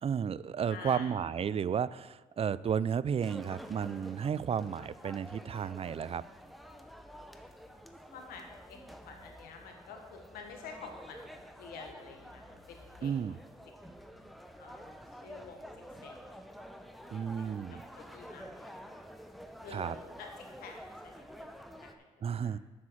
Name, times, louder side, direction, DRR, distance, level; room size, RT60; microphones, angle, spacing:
voice 1, 0.0-6.2 13.0-13.4 17.1-17.8 19.7-19.9 22.2-22.6, right 7 dB, 40° right, 18 dB, 0.4 m, -33 dB
voice 2, 0.7-1.1 8.1-13.4 14.6-15.7 16.0-16.3 17.4-19.0 19.6-21.5 21.8-22.6, left 5 dB, 85° left, 3 dB, 1.4 m, -49 dB
sound 1, 3.2-21.9, equal, ahead, 0.9 m, -49 dB
7.2 x 6.4 x 7.4 m, 1.3 s
supercardioid pair, 60°, 15 cm